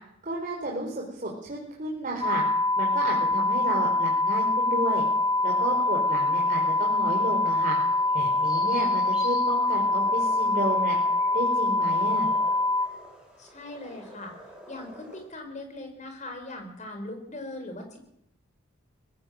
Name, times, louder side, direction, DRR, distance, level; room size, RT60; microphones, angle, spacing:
voice 1, 0.2-2.4 2.8-5.0 5.4-7.8 8.1-11.0 11.3-12.3, right 1 dB, 35° right, -2 dB, 4.6 m, -32 dB
sound 1, 2.2-12.9, left 2 dB, 15° left, 1.2 m, -24 dB
sound 2, 4.6-15.2, right 1 dB, 5° right, 6.7 m, -48 dB
voice 2, 13.4-14.3 14.7-18.0, left 2 dB, 35° left, 5 dB, 4.9 m, -40 dB
20.5 x 17.0 x 7.8 m, 0.77 s
head